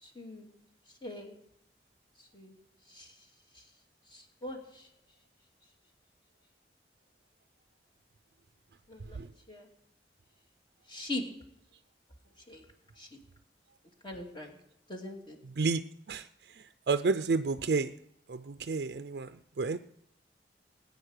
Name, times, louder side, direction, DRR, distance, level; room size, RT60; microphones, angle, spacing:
voice 1, 0.0-0.5 1.0-1.3 2.3-2.6 2.9-3.1 4.1-4.9 8.9-9.2 9.5-9.7 10.9-11.2 12.5-12.6 13.0-13.1 14.0-14.5 14.9-15.4, left 2 dB, 25° left, 2 dB, 2.5 m, -41 dB
voice 2, 15.4-17.9 18.3-19.8, right 4 dB, 65° right, 10 dB, 0.5 m, -31 dB
19.0 x 9.5 x 6.5 m, 0.78 s
head